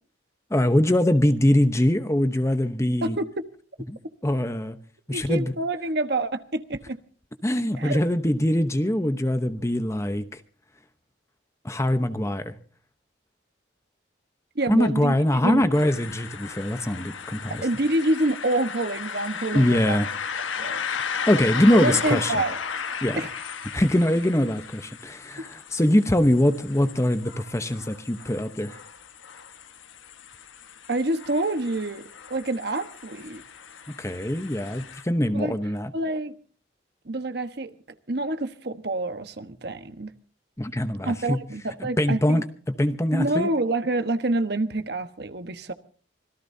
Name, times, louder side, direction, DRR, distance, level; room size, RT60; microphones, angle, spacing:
voice 1, 0.5-3.2 3.9-4.8 5.1-5.5 7.4-10.4 11.6-12.5 14.7-17.7 19.5-20.1 21.3-22.4 23.0-23.2 23.7-28.8 33.9-35.9 40.6-41.4 41.8-43.5, left 1 dB, 15° left, 0.9 m, -23 dB
voice 2, 3.0-3.4 5.1-7.0 7.8-8.0 14.5-15.1 15.4-15.6 17.6-20.0 20.6-20.8 21.7-22.6 23.1-23.3 25.4-25.5 30.9-33.4 35.3-35.6 35.9-36.4 37.0-37.7 38.1-40.1 41.0-42.4 43.1-45.7, right 2 dB, 55° right, 1.3 m, -27 dB
sound 1, 15.7-35.0, left 6 dB, 85° left, 1.3 m, -36 dB
25.5 x 17.5 x 2.7 m
head